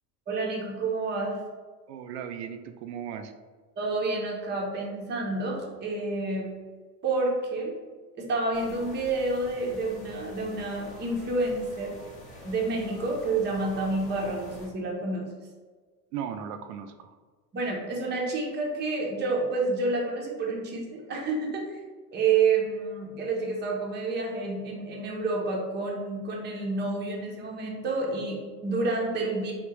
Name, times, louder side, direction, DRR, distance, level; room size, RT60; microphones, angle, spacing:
voice 1, 0.3-1.4 3.8-6.5 7.0-7.7 8.2-11.9 12.4-15.3 17.5-21.8 22.1-29.5, right 3 dB, 20° right, -1 dB, 0.7 m, -29 dB
voice 2, 1.9-3.3 16.1-17.1, right 8 dB, 75° right, 8 dB, 0.5 m, -37 dB
sound 1, 8.5-14.7, left 1 dB, 15° left, 0.8 m, -46 dB
3.5 x 2.4 x 3.0 m, 1.4 s
hypercardioid pair, 90°, 49 cm